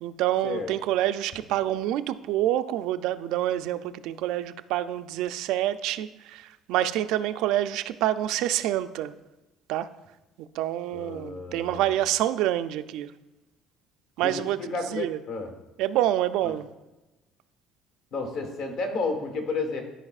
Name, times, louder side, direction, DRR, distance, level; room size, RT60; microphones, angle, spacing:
voice 1, 0.0-9.1 9.7-9.9 10.4-13.1 14.2-15.2 15.8-16.7, right 13 dB, 75° right, 0.3 m, -27 dB
voice 2, 10.9-11.9 14.2-15.5 16.4-16.5 18.1-19.8, left 3 dB, 65° left, 1.3 m, -32 dB
13.0 x 4.8 x 2.4 m
cardioid pair, 155°, 0 cm